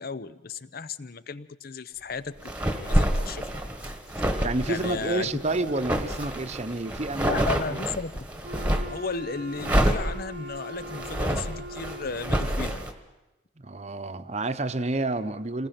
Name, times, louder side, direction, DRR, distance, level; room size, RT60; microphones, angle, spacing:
voice 1, 0.0-3.5 3.8-3.9 4.7-5.3 7.2-8.2 8.9-12.8, left 4 dB, 45° left, 15 dB, 0.7 m, -35 dB
sound 1, 2.4-9.0 9.5-12.9, equal, 5° right, 1.5 m, -28 dB
voice 2, 4.4-7.9 13.6-15.7, right 2 dB, 35° right, 10 dB, 0.9 m, -29 dB
Wind instrument woodwind instrument, 8.4-12.7, equal, 60° right, 1.0 m, -41 dB
28.0 x 20.0 x 5.9 m, 1.0 s
head